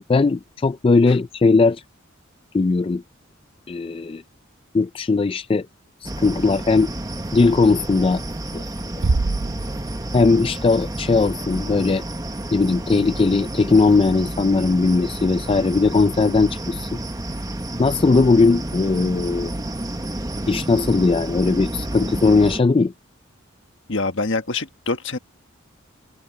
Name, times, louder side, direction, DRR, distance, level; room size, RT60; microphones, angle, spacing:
voice 1, 0.0-1.8 2.5-3.0 3.7-4.2 4.7-5.7 6.0-6.9 7.3-8.2 8.5-8.6 10.1-12.0 12.5-17.0 17.8-19.5 20.5-22.9, left 3 dB, 25° left, 0.3 m, -18 dB
sound 1, 6.0-22.6, right 1 dB, 20° right, 1.1 m, -30 dB
Bass drum, 9.0-10.5, right 3 dB, 80° right, 0.7 m, -24 dB
voice 2, 23.9-25.2, left 3 dB, 65° left, 1.5 m, -25 dB
head